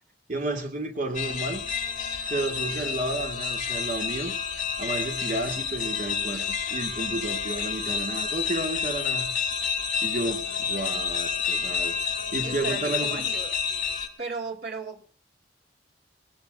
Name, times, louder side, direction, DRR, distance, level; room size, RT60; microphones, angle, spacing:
voice 1, 0.3-1.6 2.3-4.3 4.8-9.3 10.0-12.0 12.3-13.2, right 2 dB, 50° right, 2.9 m, -31 dB
sound 1, 1.1-14.1, left 6 dB, 45° left, 2.5 m, -29 dB
voice 2, 12.4-13.6 14.2-15.0, right 4 dB, 70° right, 3.0 m, -35 dB
21.0 x 19.5 x 2.6 m
head